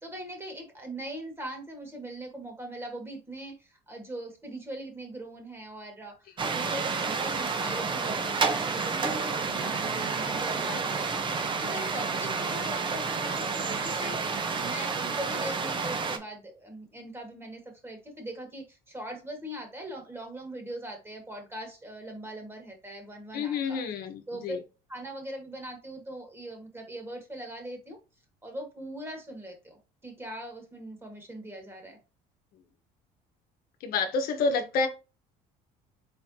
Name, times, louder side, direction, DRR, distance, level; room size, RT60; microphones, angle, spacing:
voice 1, 0.0-11.3 11.6-23.8 24.3-24.6 24.9-28.0 28.4-32.0, right 1 dB, 15° right, 1.9 m, -41 dB
sound 1, 6.4-16.2, right 4 dB, 30° right, 0.8 m, -30 dB
voice 2, 23.3-24.6 33.8-34.9, left 4 dB, 65° left, 1.1 m, -29 dB
4.4 x 4.2 x 2.8 m
cardioid pair, 125°, 16 cm